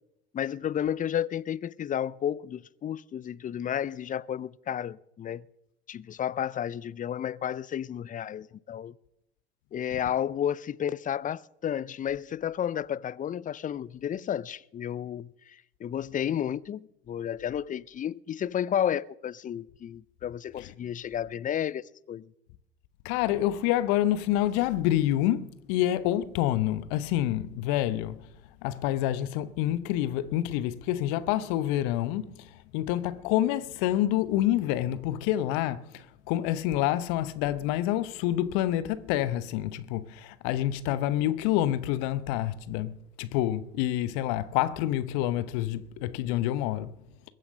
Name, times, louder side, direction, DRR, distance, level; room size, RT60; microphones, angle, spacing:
voice 1, 0.3-5.4 5.9-8.9 9.7-22.2, left 9 dB, 25° left, 0.5 m, -32 dB
voice 2, 23.0-28.2 28.6-32.5 32.7-46.9, left 13 dB, 60° left, 1.0 m, -27 dB
22.0 x 7.7 x 6.5 m
hypercardioid pair, 65°, 31 cm